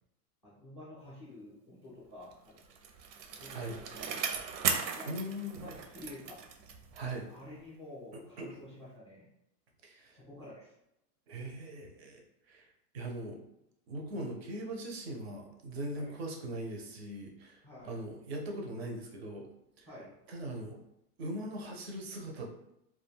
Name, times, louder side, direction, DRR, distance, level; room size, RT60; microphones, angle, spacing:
voice 1, 0.4-2.7 3.4-4.0 4.9-5.2 5.5-6.4 7.3-9.3 10.1-10.7 14.1-14.3 15.9-16.1 17.6-18.1 19.9-20.1, left 1 dB, 20° left, -8 dB, 0.3 m, -50 dB
Bicycle, 2.3-7.2 7.6-7.7, right 6 dB, 90° right, 0.6 m, -37 dB
voice 2, 5.1-5.7 6.9-7.3 8.1-8.6 9.8-10.1 11.3-12.7 12.9-13.4 13.9-19.5 19.8-19.9 20.3-20.8 21.2-22.7, right 1 dB, 45° right, 2 dB, 0.4 m, -40 dB
2.3 x 2.2 x 3.2 m, 0.81 s
supercardioid pair, 170°, 49 cm